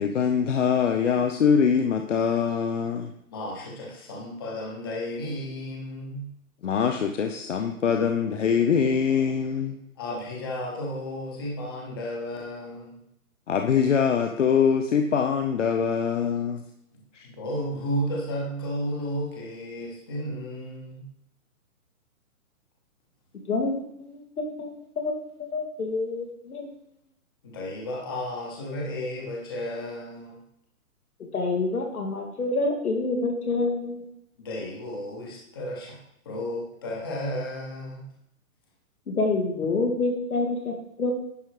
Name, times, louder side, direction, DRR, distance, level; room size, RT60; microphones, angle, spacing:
voice 1, 0.0-3.1 6.6-9.8 13.5-16.6 17.1-17.3, left 7 dB, 55° left, 5 dB, 0.8 m, -23 dB
voice 2, 3.3-6.3 10.0-13.0 16.9-21.0 27.4-30.4 34.4-36.0 36.2-38.0, equal, 15° left, -2 dB, 1.0 m, -33 dB
voice 3, 23.5-24.7 25.0-25.1 25.5-26.7 31.2-34.1 39.1-41.1, left 3 dB, 85° left, 2 dB, 2.7 m, -27 dB
10.5 x 5.3 x 4.8 m, 0.77 s
hypercardioid pair, 180°, 43 cm